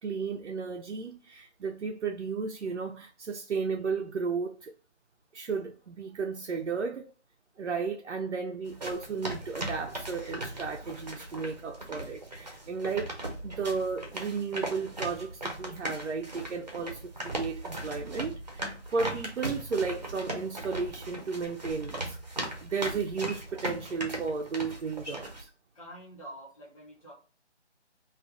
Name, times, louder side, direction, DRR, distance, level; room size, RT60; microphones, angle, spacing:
voice 1, 0.0-4.7 5.3-7.1 7.6-13.2 13.4-25.5, right 5 dB, 75° right, 0.5 m, -34 dB
sound 1, 8.7-25.4, right 1 dB, 35° right, 0.6 m, -38 dB
voice 2, 25.7-27.1, right 1 dB, 30° left, 0.8 m, -48 dB
2.5 x 2.4 x 3.3 m
figure-of-eight pair, 160°, 35 cm